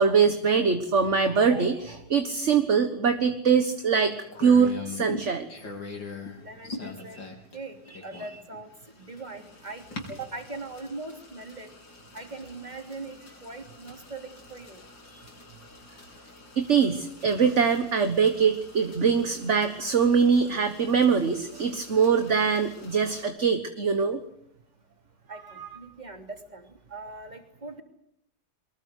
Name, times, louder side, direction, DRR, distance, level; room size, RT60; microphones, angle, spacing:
voice 1, 0.0-5.5 16.6-24.2 25.6-25.7, right 6 dB, 40° right, 7 dB, 1.6 m, -23 dB
sound 1, 3.7-23.3, left 3 dB, 80° left, 5.1 m, -44 dB
voice 2, 6.4-7.2 7.5-11.7 12.1-14.8 25.3-27.8, right 3 dB, 20° right, 5 dB, 3.2 m, -41 dB
24.0 x 20.5 x 8.3 m, 0.75 s
omnidirectional pair, 2.0 m